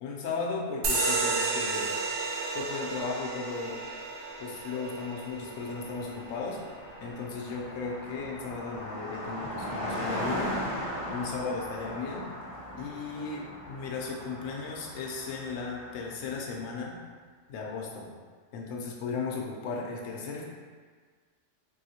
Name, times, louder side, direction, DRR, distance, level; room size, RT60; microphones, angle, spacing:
voice 1, 0.0-2.0 2.5-3.8 4.4-6.6 7.0-10.6 11.1-12.3 12.7-17.0 17.5-18.1 18.5-20.5, left 4 dB, 80° left, -1 dB, 0.9 m, -36 dB
sound 1, 0.8-7.9, right 3 dB, 70° right, 0.8 m, -33 dB
Car passing by, 5.0-5.1 5.3-16.3, equal, 30° left, 0.9 m, -38 dB
3.7 x 2.8 x 2.7 m, 1.5 s
omnidirectional pair, 1.3 m